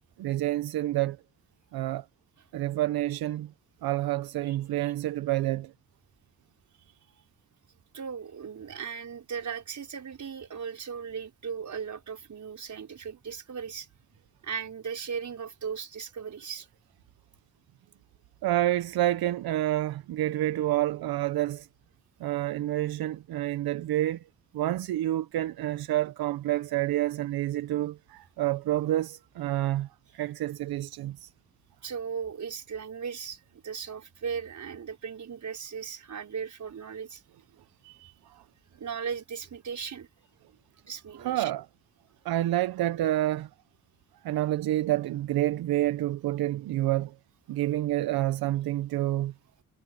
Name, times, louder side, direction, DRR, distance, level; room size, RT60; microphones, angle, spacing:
voice 1, 0.2-1.2 1.7-2.0 2.5-3.5 3.8-5.7 18.4-21.7 22.2-24.2 24.5-29.9 30.1-31.3 38.3-38.4 41.2-41.7 42.2-43.5 44.2-47.1 47.5-49.3, right 14 dB, 90° right, 0.8 m, -28 dB
voice 2, 4.5-4.9 7.9-13.9 14.4-16.7 31.8-37.2 37.8-38.1 38.8-40.1 40.9-41.5, right 6 dB, 55° right, 5.4 m, -37 dB
cardioid pair, 90°, 36 cm